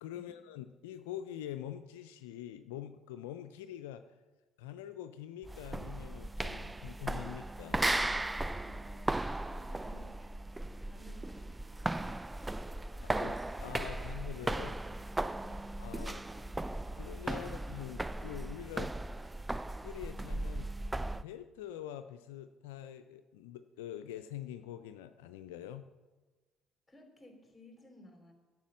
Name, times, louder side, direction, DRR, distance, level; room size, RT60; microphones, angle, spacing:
voice 1, 0.0-4.1 4.6-7.8 13.0-14.8 15.8-16.2 17.0-18.9 19.8-20.7 21.2-25.9, left 11 dB, 75° left, 10 dB, 0.4 m, -45 dB
sound 1, 5.4-21.3, right 2 dB, 15° right, 0.3 m, -37 dB
voice 2, 8.6-10.2 10.8-11.5 11.9-12.5 12.9-13.3 13.5-14.5 15.3-15.7 17.4-17.6 26.9-28.3, left 1 dB, 10° left, 2 dB, 3.3 m, -57 dB
11.5 x 6.1 x 7.4 m, 1.3 s
hypercardioid pair, 55°, 0 cm